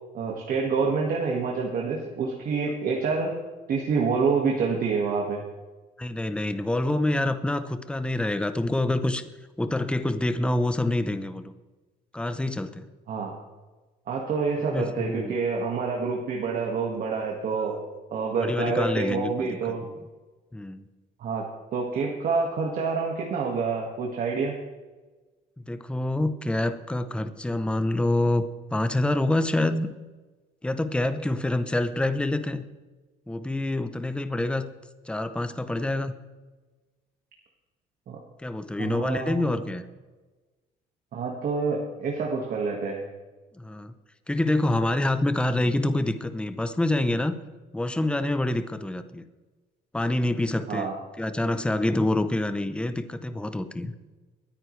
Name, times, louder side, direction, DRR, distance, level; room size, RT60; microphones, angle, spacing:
voice 1, 0.1-3.4 3.7-5.4 13.1-13.3 14.1-17.8 18.1-19.8 21.2-21.4 21.7-24.6 38.1-38.2 38.8-39.5 41.1-43.0 50.7-50.9, right 4 dB, 55° right, -1 dB, 1.9 m, -27 dB
voice 2, 6.0-9.2 9.6-11.5 12.1-12.9 14.7-15.3 18.4-19.5 20.5-20.8 25.7-28.4 28.7-29.9 30.6-32.6 33.3-34.7 35.1-36.1 38.4-39.8 43.5-43.9 44.3-47.4 47.7-49.2 49.9-50.9 51.2-53.9, left 1 dB, 5° left, 10 dB, 0.8 m, -26 dB
22.5 x 9.6 x 3.3 m, 1.3 s
cardioid pair, 110°, 17 cm